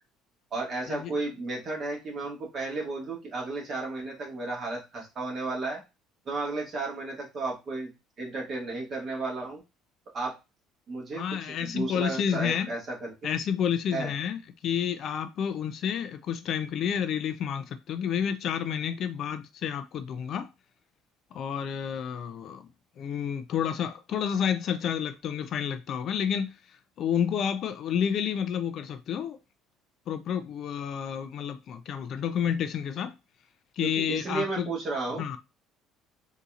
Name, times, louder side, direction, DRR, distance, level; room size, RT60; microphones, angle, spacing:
voice 1, 0.5-5.8 6.2-7.9 8.2-9.6 10.1-10.4 10.9-13.3 13.9-14.1 33.8-35.2, right 3 dB, 35° right, 1.6 m, -33 dB
voice 2, 11.2-12.7 13.2-20.5 21.3-22.7 23.0-29.4 30.1-33.1 33.8-34.7 35.2-35.4, left 8 dB, 50° left, 0.4 m, -30 dB
4.0 x 2.7 x 2.4 m
cardioid pair, 135°, 0 cm